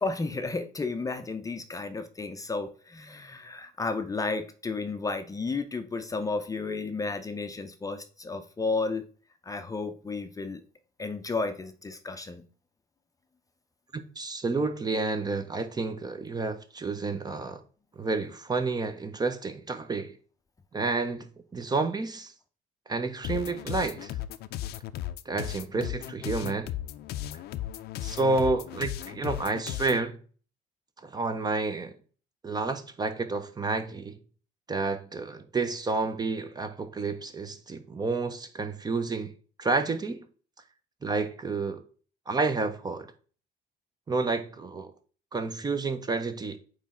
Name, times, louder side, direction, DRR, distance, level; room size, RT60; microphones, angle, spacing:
voice 1, 0.0-9.0 9.4-10.6 11.0-12.4, left 3 dB, 20° left, 0.5 m, -32 dB
voice 2, 13.9-17.6 18.0-20.1 20.7-22.3 22.9-24.1 25.3-26.7 28.0-30.2 31.0-31.9 32.4-34.2 34.7-39.3 39.6-40.2 41.0-41.8 42.3-43.1 44.1-44.9 45.3-46.6, right 3 dB, 25° right, 0.7 m, -30 dB
sound 1, 23.2-30.0, left 13 dB, 70° left, 0.5 m, -36 dB
8.4 x 3.1 x 3.7 m
cardioid pair, 110°, 17 cm